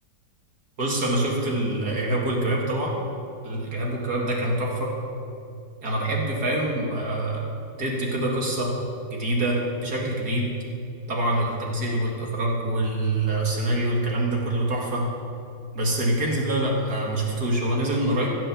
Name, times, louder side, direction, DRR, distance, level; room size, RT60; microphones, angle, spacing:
voice 1, 0.8-3.0 3.4-4.9 5.8-7.5 7.8-8.7 9.1-10.5 11.1-15.1 15.7-18.4, right 1 dB, 60° right, -2 dB, 2.5 m, -25 dB
15.5 x 7.8 x 7.2 m, 2.6 s
omnidirectional pair, 1.9 m